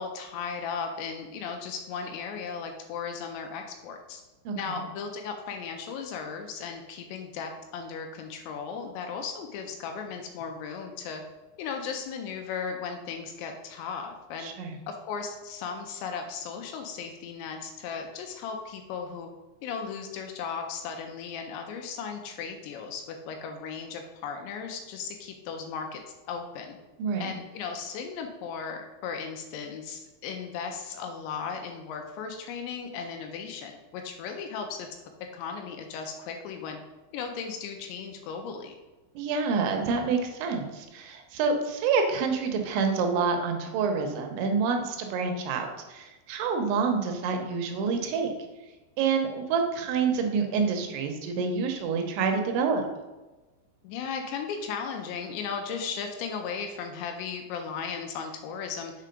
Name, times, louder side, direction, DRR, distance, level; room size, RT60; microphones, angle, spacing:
voice 1, 0.0-4.2 4.6-11.2 11.6-14.5 14.9-19.3 19.6-26.0 26.3-26.8 27.2-34.9 35.3-36.8 37.1-38.8 53.8-58.9, left 6 dB, 80° left, 4 dB, 2.8 m, -36 dB
voice 2, 4.5-4.8 14.4-14.8 27.0-27.3 39.2-48.3 49.0-52.8, right 5 dB, 80° right, 4 dB, 3.1 m, -27 dB
6.6 x 4.7 x 5.2 m, 1.1 s
omnidirectional pair, 5.5 m